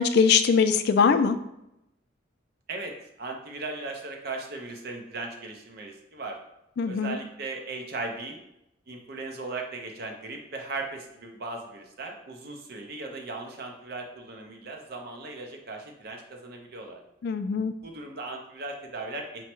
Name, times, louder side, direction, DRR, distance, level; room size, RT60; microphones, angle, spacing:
voice 1, 0.0-1.4 6.8-7.2 17.2-17.7, left 6 dB, 55° left, 10 dB, 0.3 m, -22 dB
voice 2, 2.7-6.4 6.9-8.4 8.9-17.0 17.8-19.4, right 3 dB, 50° right, 2 dB, 0.6 m, -37 dB
4.6 x 2.1 x 4.4 m, 0.84 s
head